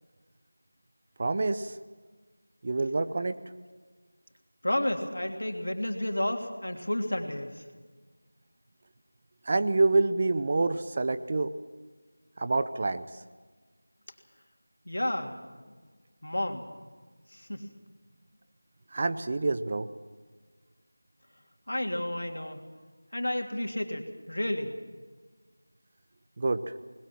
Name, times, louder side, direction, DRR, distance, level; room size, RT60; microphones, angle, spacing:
voice 1, 1.2-1.8 2.6-3.3 9.5-11.5 12.4-13.0 18.9-19.9 26.4-26.6, right 3 dB, 30° right, 12 dB, 0.7 m, -27 dB
voice 2, 4.6-7.6 14.8-15.6 16.2-16.6 17.3-17.7 21.7-22.7 23.1-24.7, left 1 dB, 75° left, 4 dB, 3.1 m, -31 dB
20.5 x 20.5 x 7.4 m, 1.4 s
figure-of-eight pair, 170°, 0 cm